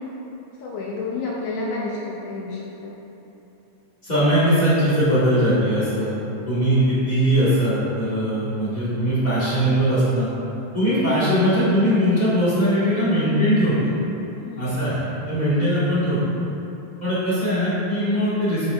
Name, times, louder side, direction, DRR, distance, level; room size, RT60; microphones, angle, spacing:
voice 1, 0.6-2.9 6.8-6.9 8.2-8.6 14.4-14.8, left 3 dB, 80° left, -4 dB, 1.5 m, -31 dB
voice 2, 4.0-6.1 6.5-10.3 10.7-13.9 14.6-15.0 15.3-16.2 17.0-18.7, equal, 45° left, -11 dB, 0.5 m, -20 dB
7.7 x 6.3 x 2.3 m, 3.0 s
omnidirectional pair, 3.4 m